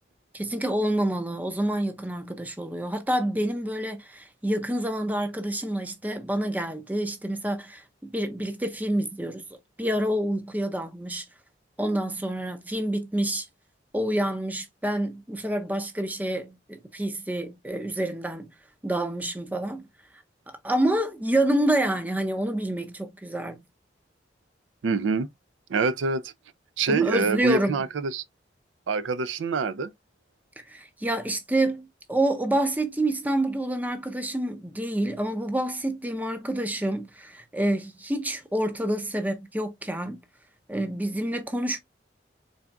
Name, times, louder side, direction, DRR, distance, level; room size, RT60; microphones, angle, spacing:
voice 1, 0.3-9.4 9.8-11.2 11.8-13.5 13.9-18.5 18.8-19.9 20.5-23.6 26.9-27.8 30.6-40.2 40.7-41.8, right 1 dB, 10° right, 0.5 m, -28 dB
voice 2, 24.8-25.3 25.7-26.3 26.8-28.2 28.9-29.9, right 4 dB, 90° right, 0.4 m, -25 dB
4.0 x 3.4 x 2.3 m
head